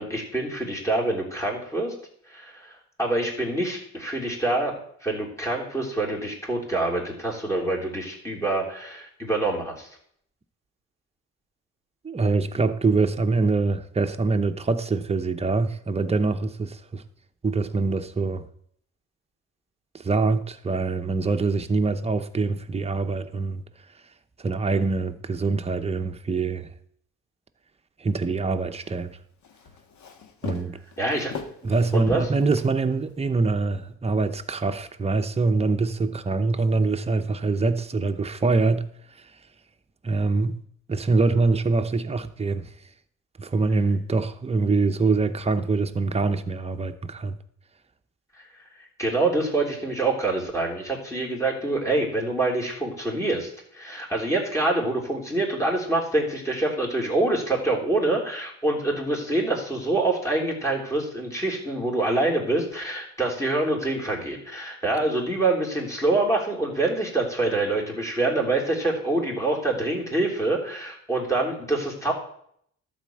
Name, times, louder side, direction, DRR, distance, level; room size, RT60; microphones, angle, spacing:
voice 1, 0.0-1.9 2.3-2.7 3.0-9.9 31.0-31.3 31.9-32.3 49.0-72.1, right 2 dB, 10° left, 3.3 m, -26 dB
voice 2, 12.0-17.0 17.4-18.5 19.9-23.6 24.4-26.7 28.0-29.2 30.4-30.8 31.6-38.9 39.2-39.3 40.0-40.6 40.9-42.7 43.4-47.4, right 3 dB, 20° right, 0.8 m, -24 dB
Walk footsteps, 28.8-33.2, left 6 dB, 70° left, 1.5 m, -40 dB
12.0 x 4.3 x 7.7 m
cardioid pair, 90°, 30 cm